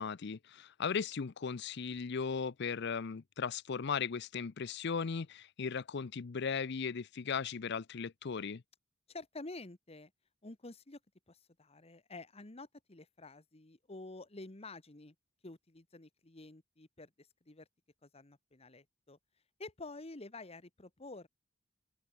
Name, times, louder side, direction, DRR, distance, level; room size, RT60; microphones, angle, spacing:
voice 1, 0.0-8.6, left 6 dB, 60° left, 0.6 m, -37 dB
voice 2, 9.1-10.1 10.4-11.0 11.3-15.1 15.4-17.7 18.0-19.2 19.6-21.3, left 2 dB, 30° left, 1.3 m, -49 dB
head